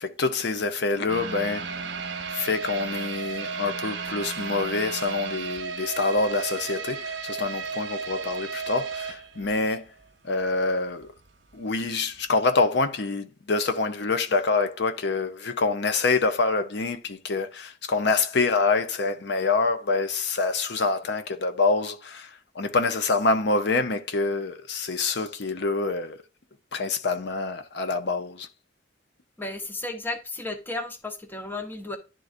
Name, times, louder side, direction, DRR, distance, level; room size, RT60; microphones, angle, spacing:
voice 1, 0.0-1.7 2.3-9.9 10.2-11.1 11.5-26.2 26.7-28.5, left 3 dB, 65° left, 0.7 m, -26 dB
sound 1, 1.1-10.1 10.4-10.5 11.0-11.1, right 5 dB, 70° right, 0.9 m, -34 dB
voice 2, 29.4-32.0, left 2 dB, 10° left, 0.8 m, -33 dB
11.0 x 3.8 x 2.5 m
head